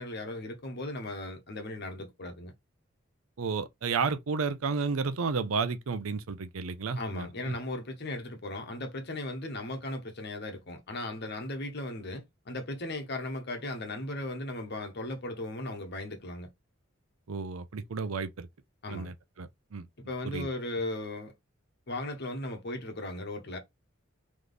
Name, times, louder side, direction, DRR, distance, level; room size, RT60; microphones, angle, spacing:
voice 1, 0.0-2.5 7.0-16.5 18.8-19.1 20.1-21.3 21.9-23.6, left 1 dB, 55° left, 1.1 m, -37 dB
voice 2, 3.4-7.6 17.3-18.5 18.9-19.9 20.2-20.5, right 5 dB, 85° right, 0.6 m, -32 dB
3.4 x 3.1 x 3.8 m
head